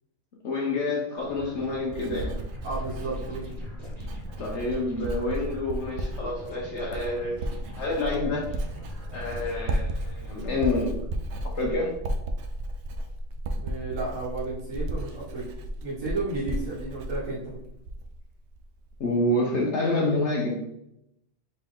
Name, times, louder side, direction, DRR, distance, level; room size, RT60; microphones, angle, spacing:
voice 1, 0.4-2.4 4.4-8.5 9.1-11.0 11.5-11.9 19.0-20.6, left 2 dB, 65° left, -3 dB, 1.1 m, -28 dB
sound 1, 1.2-10.9, left 1 dB, 30° right, 1.4 m, -44 dB
Writing, 1.2-18.2 18.5-19.0, right 1 dB, 65° right, 0.8 m, -34 dB
voice 2, 2.6-3.6 13.5-15.4 15.8-17.6, right 3 dB, 90° right, -7 dB, 1.5 m, -33 dB
4.3 x 3.0 x 3.6 m, 0.80 s
omnidirectional pair, 1.4 m